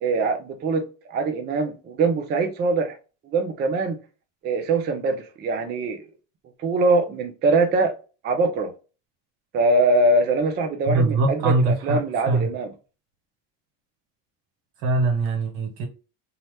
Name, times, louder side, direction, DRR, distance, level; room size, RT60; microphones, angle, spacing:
voice 1, 0.0-3.0 3.3-4.0 4.4-6.1 6.6-7.9 8.2-8.7 9.5-12.7, right 3 dB, 25° right, 0.3 m, -23 dB
voice 2, 10.8-12.5 14.8-15.9, right 2 dB, 80° right, 1.2 m, -22 dB
2.8 x 2.0 x 3.1 m
supercardioid pair, 100°, 49 cm